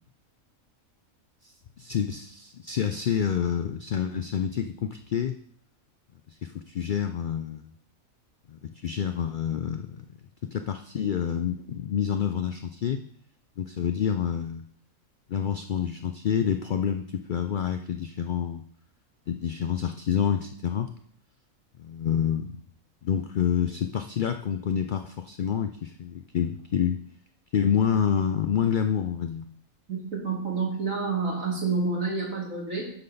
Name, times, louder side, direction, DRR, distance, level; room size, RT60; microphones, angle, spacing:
voice 1, 1.4-5.4 6.3-7.7 8.5-10.1 10.4-13.0 13.6-14.6 15.3-18.6 19.3-20.9 21.8-22.5 23.0-27.0 27.5-29.5, left 8 dB, 90° left, 7 dB, 0.4 m, -28 dB
voice 2, 29.9-32.9, right 4 dB, 70° right, -3 dB, 2.9 m, -29 dB
8.9 x 3.9 x 6.7 m, 0.63 s
omnidirectional pair, 1.4 m